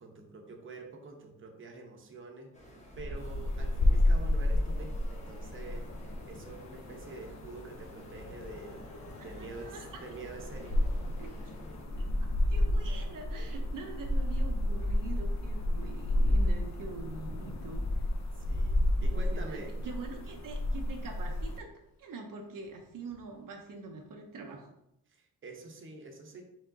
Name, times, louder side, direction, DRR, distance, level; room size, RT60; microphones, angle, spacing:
voice 1, 0.0-11.0 18.3-19.7 25.1-26.4, right 3 dB, 35° right, 2 dB, 0.7 m, -47 dB
sound 1, 2.5-11.8, left 1 dB, 20° left, 1.0 m, -47 dB
sound 2, 3.2-21.6, left 1 dB, 55° left, 0.6 m, -31 dB
voice 2, 9.2-10.0 11.2-11.7 12.0-12.1 12.5-17.8 19.0-21.7 22.0-24.7, right 3 dB, 70° right, 2 dB, 0.6 m, -44 dB
Thunder / Rain, 15.8-24.1, left 2 dB, 75° left, 0.9 m, -56 dB
4.6 x 3.5 x 2.6 m, 0.84 s
wide cardioid pair, 110°, 34 cm